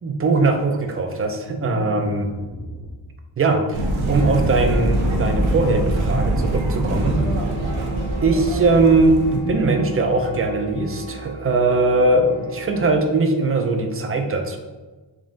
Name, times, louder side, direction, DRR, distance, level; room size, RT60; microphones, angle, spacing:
voice 1, 0.0-2.3 3.4-7.2 8.2-14.6, right 3 dB, 30° right, 4 dB, 0.4 m, -20 dB
sound 1, 1.4-2.9 5.2-6.3 6.6-7.3 9.1-10.3, equal, 10° right, 1.5 m, -33 dB
sound 2, 3.7-9.4, right 1 dB, 90° right, 0.7 m, -23 dB
sound 3, 4.1-13.0, right 1 dB, 25° left, 1.4 m, -35 dB
3.6 x 3.6 x 2.4 m, 1.2 s
wide cardioid pair, 150°, 46 cm